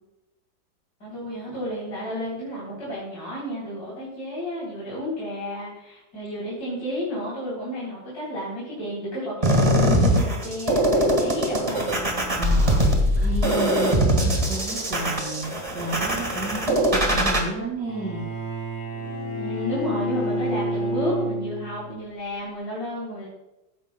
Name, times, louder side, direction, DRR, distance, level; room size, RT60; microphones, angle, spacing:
voice 1, 1.0-11.9 19.3-23.3, equal, 55° left, -8 dB, 4.0 m, -31 dB
sound 1, 9.4-17.4, equal, 20° right, 1.5 m, -21 dB
voice 2, 12.3-18.3, right 2 dB, 55° right, -7 dB, 3.1 m, -32 dB
Bowed string instrument, 17.9-22.0, equal, 80° left, 3.4 m, -29 dB
15.0 x 10.5 x 2.3 m, 0.96 s
omnidirectional pair, 2.0 m